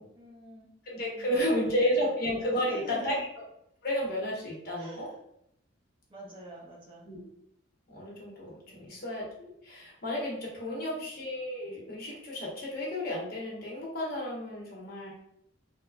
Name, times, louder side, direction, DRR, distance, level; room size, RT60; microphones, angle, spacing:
voice 1, 0.1-0.7 1.1-2.0 2.5-3.3 4.8-5.2 6.1-7.1 8.7-9.0 10.7-11.0, right 1 dB, 25° right, -5 dB, 0.6 m, -47 dB
voice 2, 0.9-3.2 3.8-5.1 7.0-7.2 7.9-15.1, equal, 50° left, -4 dB, 0.8 m, -32 dB
3.0 x 2.0 x 2.3 m, 0.76 s
head